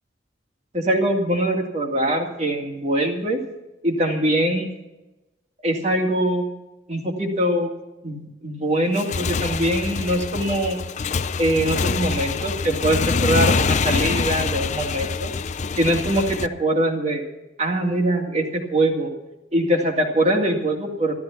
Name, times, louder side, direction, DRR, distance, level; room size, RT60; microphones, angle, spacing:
voice 1, 0.7-3.4 3.8-4.7 5.6-6.5 6.9-7.7 8.0-10.8 11.4-15.3 15.8-17.2 17.6-19.1 19.5-21.1, right 1 dB, 35° right, 2 dB, 2.2 m, -22 dB
Motorcycle / Engine, 8.8-16.5, left 5 dB, 35° left, 0.4 m, -25 dB
13.5 x 13.0 x 5.9 m, 1.0 s
head